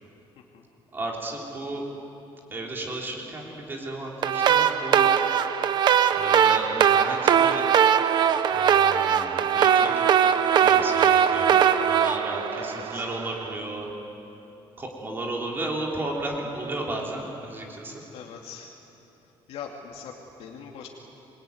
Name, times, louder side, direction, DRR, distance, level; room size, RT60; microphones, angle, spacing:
voice 1, 0.4-0.7 12.6-13.1 18.1-18.7 19.2-20.9, left 7 dB, 75° left, 0 dB, 2.6 m, -42 dB
voice 2, 0.9-1.8 2.5-5.1 6.1-7.7 8.4-10.0 10.6-13.9 14.8-18.0, right 2 dB, 20° right, -1 dB, 3.5 m, -34 dB
sound 1, 4.2-13.3, right 8 dB, 45° right, 1.0 m, -21 dB
26.5 x 22.5 x 9.5 m, 2.9 s
cardioid pair, 180°, 10 cm